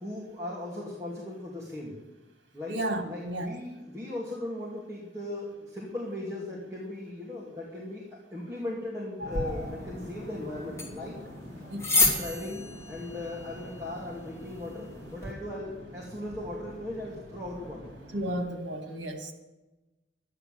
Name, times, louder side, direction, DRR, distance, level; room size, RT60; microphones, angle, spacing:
voice 1, 0.0-2.0 2.5-2.7 3.0-8.0 8.3-11.2 11.9-17.9, left 1 dB, 15° right, -5 dB, 2.6 m, -38 dB
voice 2, 2.7-3.5 11.7-11.9 18.1-19.3, right 1 dB, 70° right, 5 dB, 2.3 m, -33 dB
sound 1, 9.2-18.4, left 1 dB, 50° right, 6.1 m, -45 dB
sound 2, 9.3-15.3, left 2 dB, 15° left, 2.8 m, -32 dB
12.0 x 10.0 x 7.8 m, 1.1 s
head